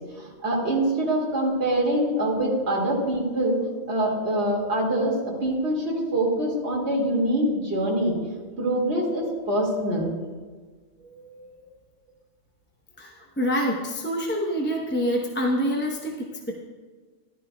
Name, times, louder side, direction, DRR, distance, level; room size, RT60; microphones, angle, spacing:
voice 1, 0.2-3.6 3.9-8.2 8.6-10.1, right 1 dB, 55° right, -3 dB, 2.5 m, -24 dB
voice 2, 11.1-11.7 13.0-16.6, equal, 10° left, -1 dB, 0.8 m, -27 dB
14.0 x 12.0 x 2.3 m, 1.4 s
omnidirectional pair, 1.3 m